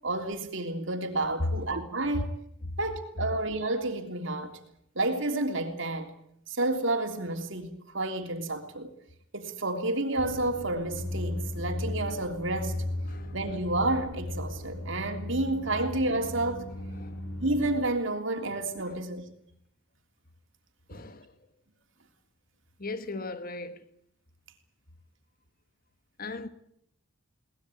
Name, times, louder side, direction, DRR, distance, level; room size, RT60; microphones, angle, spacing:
voice 1, 0.0-2.3 2.8-4.6 4.9-6.1 6.5-8.9 9.3-12.8 13.3-16.7 17.4-19.2 20.9-21.0, right 2 dB, 60° right, 3.2 m, -30 dB
sound 1, 10.2-17.8, left 1 dB, 80° left, 4.0 m, -36 dB
voice 2, 20.9-21.3 22.8-23.8 26.2-26.5, left 2 dB, 45° left, 1.5 m, -37 dB
22.5 x 19.5 x 9.2 m
head